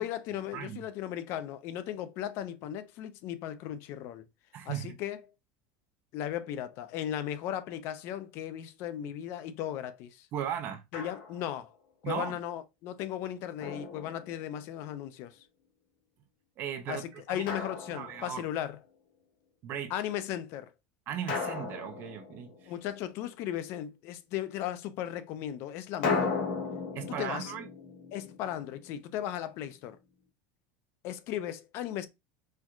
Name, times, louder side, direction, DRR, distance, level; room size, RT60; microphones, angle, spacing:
voice 1, 0.0-4.2 4.7-5.2 6.1-10.3 10.9-11.7 12.0-15.4 16.9-18.8 19.9-20.7 22.7-26.4 27.2-27.5 28.1-30.0 31.0-32.1, left 11 dB, 45° left, 0.4 m, -36 dB
voice 2, 0.5-0.8 4.5-5.0 10.3-10.8 12.0-12.4 16.6-17.7 17.9-18.4 19.6-19.9 21.1-22.7 26.9-27.7, right 9 dB, 35° right, 0.5 m, -37 dB
Drum, 10.9-11.6 13.6-14.7 17.5-18.6 21.3-22.9 26.0-29.0, left 4 dB, 80° left, 1.5 m, -36 dB
4.4 x 2.3 x 2.4 m
cardioid pair, 165°, 6 cm